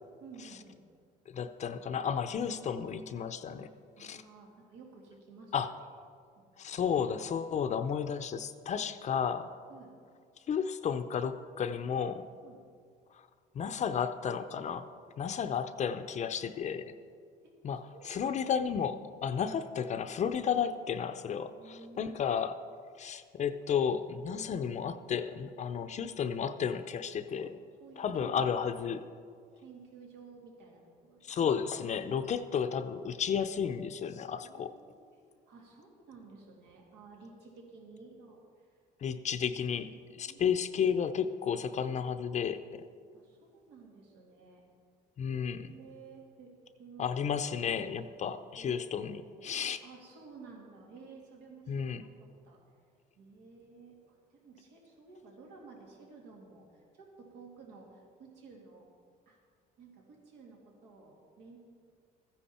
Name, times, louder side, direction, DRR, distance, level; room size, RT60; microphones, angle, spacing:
voice 1, 0.2-0.8 4.0-5.7 6.4-6.5 9.7-9.9 12.4-12.6 17.4-18.3 21.4-22.2 27.4-27.5 27.8-28.7 29.6-31.2 34.3-38.7 40.3-40.5 43.1-44.6 45.3-46.5 46.8-47.1 48.6-49.5 49.8-52.1 52.4-52.6 53.2-58.9 59.3-59.4 59.8-61.6, right 4 dB, 90° right, -1 dB, 2.5 m, -53 dB
voice 2, 1.3-3.7 4.0-4.2 5.5-5.7 6.6-9.6 10.5-12.3 13.1-13.3 13.5-14.9 15.2-17.0 17.6-22.6 23.0-27.6 28.0-29.0 31.2-34.7 39.0-42.8 45.2-45.7 47.0-49.8 51.7-52.0, left 7 dB, 45° left, 10 dB, 0.6 m, -33 dB
14.5 x 10.0 x 4.3 m, 2.1 s
cardioid pair, 110°, 17 cm